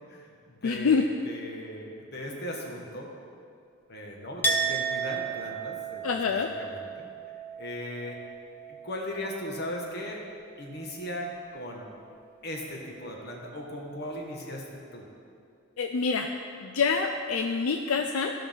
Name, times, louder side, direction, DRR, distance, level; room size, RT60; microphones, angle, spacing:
voice 1, 0.0-3.1 3.9-7.1 7.6-8.2 8.8-10.2 10.6-11.9 12.4-15.1, left 1 dB, 50° left, -1 dB, 1.5 m, -38 dB
voice 2, 0.6-1.0 6.0-6.5 15.8-16.3 16.6-18.3, left 5 dB, 80° left, 4 dB, 0.5 m, -26 dB
Chink clink, 4.4-10.0 10.2-11.1, right 4 dB, 10° left, 0.6 m, -34 dB
15.5 x 5.9 x 3.6 m, 2.3 s
head